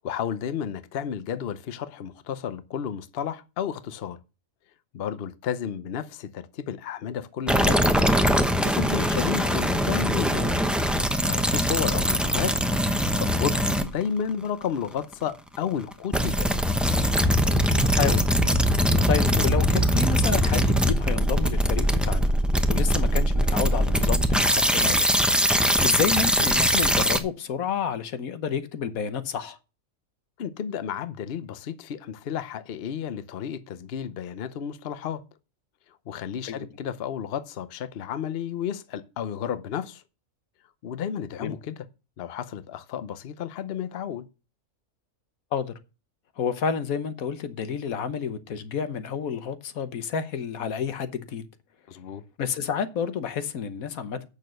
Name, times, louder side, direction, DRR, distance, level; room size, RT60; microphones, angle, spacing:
voice 1, 0.0-4.2 4.9-7.8 8.4-10.7 11.2-12.6 12.9-16.6 30.4-35.2 36.1-40.0 40.8-41.8 42.2-44.2 51.9-52.2, left 8 dB, 55° left, 0.9 m, -32 dB
sound 1, 7.5-14.1 15.1-15.2 15.9-27.2, equal, ahead, 0.7 m, -22 dB
voice 2, 17.8-18.3 18.7-22.3 22.7-25.1 25.4-29.6 36.5-36.7 41.4-41.5 45.5-45.7 46.4-51.5 52.4-54.3, left 7 dB, 90° left, 1.4 m, -30 dB
8.6 x 6.5 x 6.4 m
omnidirectional pair, 1.4 m